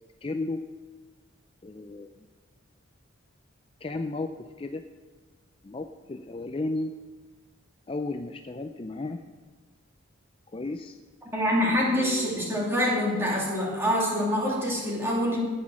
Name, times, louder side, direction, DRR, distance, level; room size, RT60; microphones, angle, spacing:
voice 1, 0.2-0.6 1.6-2.1 3.8-4.8 5.6-6.9 7.9-9.2 10.5-11.0 11.9-12.3, left 2 dB, 25° left, 6 dB, 0.4 m, -33 dB
voice 2, 11.3-15.4, equal, 10° right, -4 dB, 2.7 m, -25 dB
17.5 x 6.1 x 6.2 m, 1.4 s
head